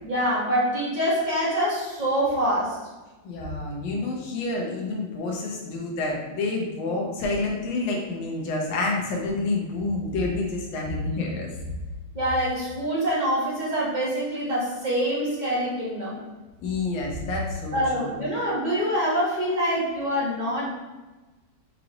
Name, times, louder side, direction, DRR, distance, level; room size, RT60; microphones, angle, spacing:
voice 1, 0.0-2.8 12.1-16.2 17.7-20.7, equal, 35° right, -8 dB, 0.8 m, -25 dB
voice 2, 3.2-11.5 16.6-18.1, left 3 dB, 70° left, -1 dB, 1.5 m, -28 dB
5.0 x 3.3 x 2.9 m, 1.2 s
omnidirectional pair, 2.4 m